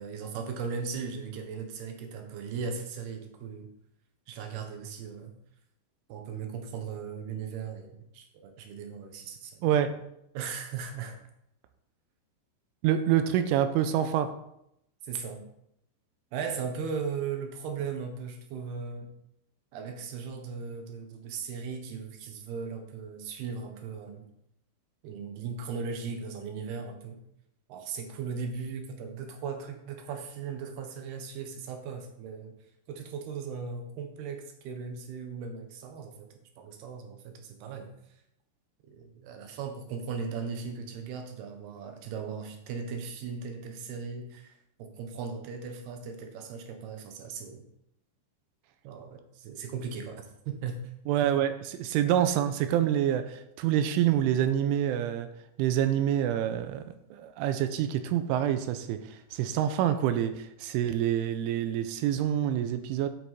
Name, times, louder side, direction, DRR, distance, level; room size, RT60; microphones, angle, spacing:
voice 1, 0.0-3.7 4.3-5.3 6.1-9.7 10.3-11.2 15.0-15.4 16.3-19.2 19.7-24.3 25.0-27.2 27.7-32.5 32.9-36.3 36.6-37.9 38.9-47.6 48.8-50.9, right 5 dB, 70° right, 5 dB, 2.8 m, -38 dB
voice 2, 9.6-9.9 12.8-14.3 51.1-55.3 55.6-63.1, right 10 dB, 85° right, 10 dB, 3.1 m, -27 dB
9.3 x 8.0 x 4.2 m, 0.78 s
omnidirectional pair, 5.6 m